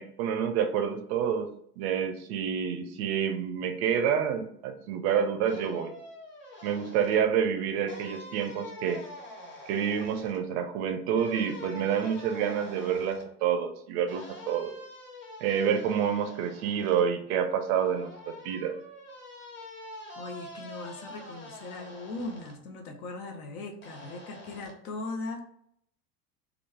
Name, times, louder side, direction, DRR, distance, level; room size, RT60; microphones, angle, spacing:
voice 1, 0.0-1.5 1.8-5.9 6.6-9.0 9.7-14.7 15.4-18.7, right 8 dB, 45° right, 7 dB, 0.4 m, -28 dB
Foley Object Plastic Window Creaks Mono, 5.5-7.2 7.9-10.4 11.1-13.3 14.1-17.0 17.7-22.5 23.8-24.7, left 1 dB, 25° left, 1.1 m, -46 dB
voice 2, 20.2-25.4, left 2 dB, 65° left, 5 dB, 0.8 m, -39 dB
3.0 x 2.4 x 3.4 m, 0.70 s
figure-of-eight pair, 80°, 47 cm